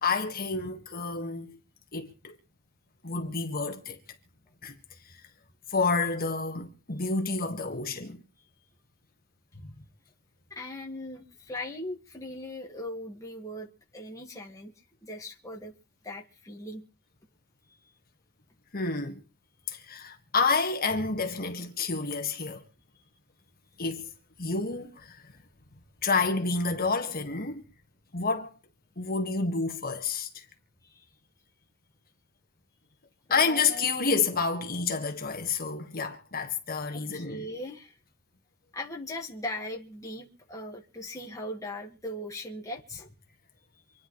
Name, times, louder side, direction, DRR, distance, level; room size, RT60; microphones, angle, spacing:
voice 1, 0.0-1.6 1.9-2.4 3.0-4.0 4.6-4.8 5.1-5.2 5.7-8.2 9.6-9.7 18.7-19.2 19.7-22.6 23.8-24.1 24.4-25.3 26.0-27.6 28.1-28.5 29.0-30.5 33.3-37.4, left 4 dB, 40° left, 1.8 m, -29 dB
voice 2, 10.5-14.7 15.0-15.7 16.0-16.8 30.8-31.1 33.3-33.9 36.9-37.9 38.7-43.1, left 1 dB, 15° left, 1.8 m, -39 dB
27.5 x 10.5 x 3.2 m
head